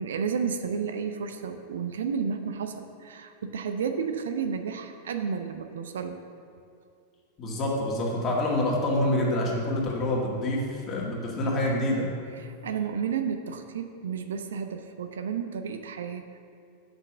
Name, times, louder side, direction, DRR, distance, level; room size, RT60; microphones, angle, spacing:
voice 1, 0.0-6.2 12.4-16.4, right 6 dB, 65° right, 7 dB, 0.5 m, -32 dB
voice 2, 7.4-12.1, left 1 dB, 30° left, -2 dB, 1.9 m, -27 dB
6.9 x 5.8 x 7.1 m, 2.4 s
figure-of-eight pair, 90°, 0 cm